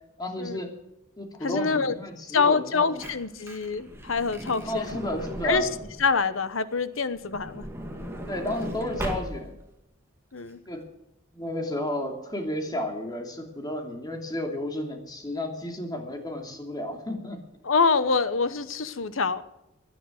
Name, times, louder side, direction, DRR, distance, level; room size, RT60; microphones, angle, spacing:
voice 1, 0.2-0.7 1.2-3.0 4.6-5.7 8.3-9.6 10.7-10.8 11.3-17.4, left 1 dB, 20° left, 3 dB, 2.8 m, -32 dB
voice 2, 1.4-2.0 2.3-4.9 5.4-5.7 6.0-7.6 10.3-10.6 17.6-19.4, left 4 dB, 90° left, 13 dB, 1.1 m, -25 dB
Truck / Door, 2.6-6.1 7.1-9.7 10.4-10.5 10.7-10.8, equal, 15° right, 2.3 m, -37 dB
17.5 x 11.0 x 6.6 m, 0.89 s
head